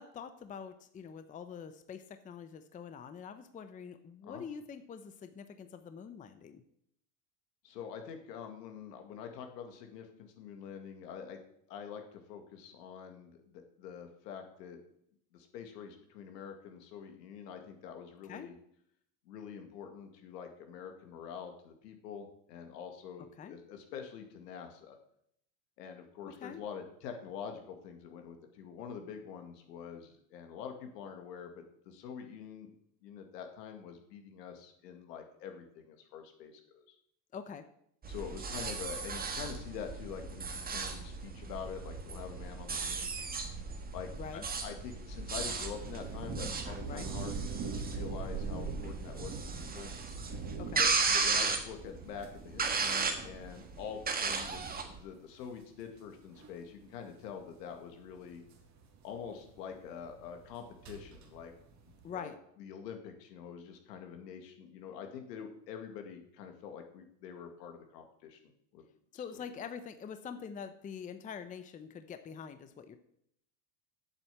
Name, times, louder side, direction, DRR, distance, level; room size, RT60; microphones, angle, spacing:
voice 1, 0.0-6.6 18.3-18.5 23.4-23.6 26.3-26.6 37.3-37.6 44.1-44.5 46.9-47.1 50.6-50.9 62.0-62.4 69.1-73.0, left 7 dB, 15° left, 10 dB, 0.7 m, -45 dB
voice 2, 7.6-11.4 11.7-14.8 15.3-18.5 19.3-25.0 25.8-32.7 33.0-37.0 38.1-43.1 43.9-49.9 50.8-54.6 54.9-58.4 59.0-61.5 61.9-62.3 62.6-68.4 68.7-68.8 69.1-69.7, left 7 dB, 75° left, 5 dB, 2.2 m, -46 dB
sound 1, 38.0-55.0, right 4 dB, 20° right, 1.6 m, -36 dB
sound 2, 45.7-62.1, right 5 dB, 35° right, 2.2 m, -44 dB
8.2 x 7.0 x 8.3 m, 0.71 s
supercardioid pair, 120°, 49 cm